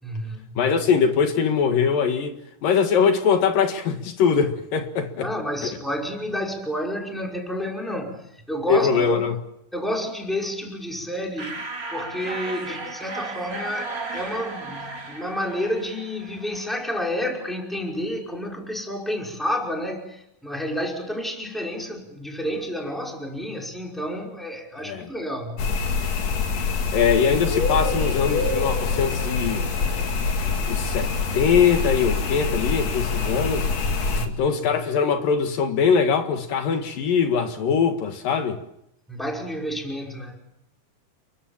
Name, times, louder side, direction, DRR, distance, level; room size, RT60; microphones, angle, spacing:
voice 1, 0.0-0.6 5.2-9.2 9.7-11.6 11.9-25.7 34.1-34.6 39.1-40.4, equal, ahead, 5.1 m, -30 dB
voice 2, 0.6-2.4 2.6-5.3 5.6-5.7 8.7-9.4 24.8-25.1 26.9-29.7 30.7-31.1 31.3-33.7 34.3-38.6, left 6 dB, 75° left, 3.5 m, -22 dB
sound 1, 11.4-16.9, right 3 dB, 25° right, 3.1 m, -35 dB
sound 2, 25.6-34.3, left 4 dB, 55° left, 3.2 m, -25 dB
29.5 x 23.0 x 7.4 m
omnidirectional pair, 3.9 m